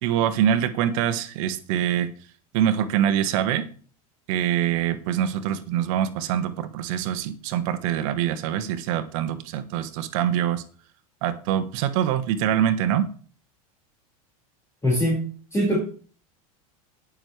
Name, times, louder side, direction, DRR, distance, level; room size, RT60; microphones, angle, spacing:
voice 1, 0.0-2.1 2.5-3.7 4.3-10.6 11.2-13.1, right 10 dB, 65° right, 9 dB, 1.3 m, -24 dB
voice 2, 14.8-15.8, equal, 15° left, -4 dB, 5.2 m, -23 dB
17.5 x 6.4 x 3.3 m, 0.41 s
hypercardioid pair, 105°, 18 cm